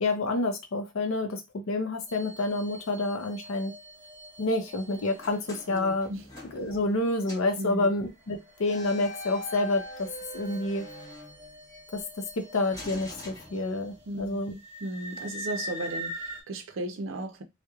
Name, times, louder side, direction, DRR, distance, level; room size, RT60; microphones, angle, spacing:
voice 1, 0.0-3.7 4.4-6.1 6.5-10.1 10.3-10.9 11.9-12.0 12.4-14.5, left 2 dB, 75° left, 0.5 m, -28 dB
sound 1, 2.1-6.4 7.1-16.4, equal, 35° right, 0.9 m, -44 dB
sound 2, 5.2-7.0 7.2-7.6 8.6-11.8 12.7-14.1, left 1 dB, 15° left, 1.1 m, -43 dB
voice 2, 5.7-6.3 7.6-7.9 14.1-17.4, right 1 dB, 65° right, 0.5 m, -36 dB
2.9 x 2.1 x 2.3 m
head